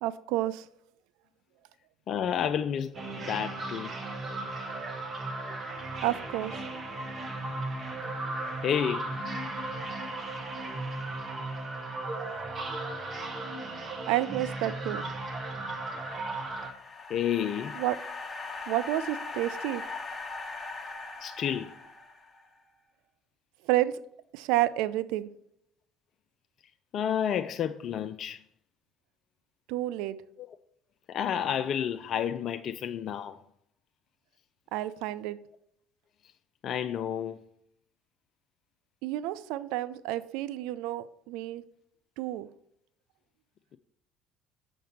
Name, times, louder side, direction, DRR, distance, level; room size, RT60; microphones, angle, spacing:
voice 1, 0.0-0.7 6.0-6.6 14.1-15.0 17.7-18.0 18.7-19.8 23.6-24.0 24.3-25.3 29.7-30.2 34.7-35.4 39.0-41.6 42.2-42.5, right 15 dB, 65° right, 0.4 m, -30 dB
voice 2, 2.1-3.9 8.6-9.1 17.1-17.8 21.2-21.7 26.9-28.4 31.1-33.4 36.6-37.4, left 9 dB, 50° left, 0.4 m, -30 dB
sound 1, 2.9-16.7, right 2 dB, 35° right, 1.2 m, -36 dB
sound 2, 16.1-22.5, left 3 dB, 25° left, 1.1 m, -40 dB
6.6 x 6.4 x 4.2 m
figure-of-eight pair, 60°, 0 cm